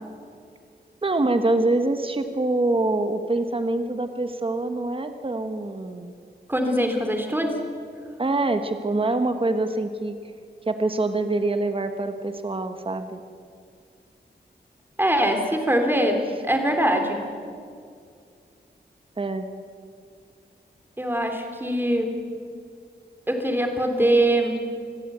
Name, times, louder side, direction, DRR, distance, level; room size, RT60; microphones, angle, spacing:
voice 1, 1.0-6.1 8.2-10.2 10.7-13.2 19.2-19.5, right 2 dB, 30° right, 8 dB, 1.3 m, -25 dB
voice 2, 6.5-7.6 15.0-17.2 21.0-22.1 23.3-24.6, right 1 dB, 10° right, 4 dB, 3.2 m, -22 dB
25.5 x 15.0 x 9.2 m, 2.3 s
wide cardioid pair, 120°, 18 cm